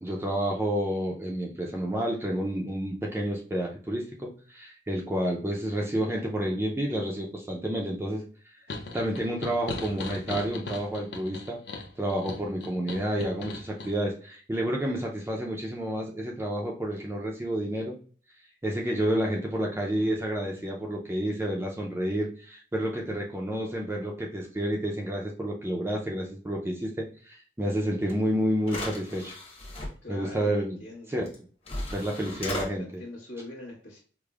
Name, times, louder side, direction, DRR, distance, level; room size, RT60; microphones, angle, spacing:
voice 1, 0.0-8.2 8.9-11.6 12.0-18.0 18.6-29.3 30.1-30.8 31.1-31.3 31.9-32.8, right 1 dB, 15° right, -1 dB, 0.3 m, -30 dB
sound 1, 8.7-13.9, left 3 dB, 65° left, 0.5 m, -38 dB
sound 2, 28.1-28.2 28.6-29.9 31.3-31.4 31.7-32.7, left 1 dB, 35° left, 0.8 m, -36 dB
voice 2, 30.0-31.1 32.3-32.4 32.8-34.0, left 2 dB, 85° left, -8 dB, 1.0 m, -42 dB
4.8 x 2.0 x 2.3 m, 0.42 s
head